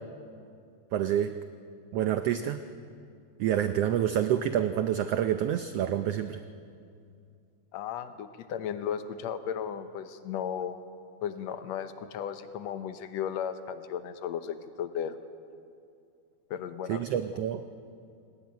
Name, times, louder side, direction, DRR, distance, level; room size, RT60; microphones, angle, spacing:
voice 1, 0.9-1.3 1.9-2.6 3.4-6.4 16.9-17.6, right 10 dB, 85° right, 9 dB, 1.3 m, -27 dB
voice 2, 7.7-10.8 11.2-15.2 16.5-17.0, left 8 dB, 70° left, 10 dB, 2.0 m, -35 dB
20.5 x 18.5 x 9.3 m, 2.4 s
omnidirectional pair, 3.6 m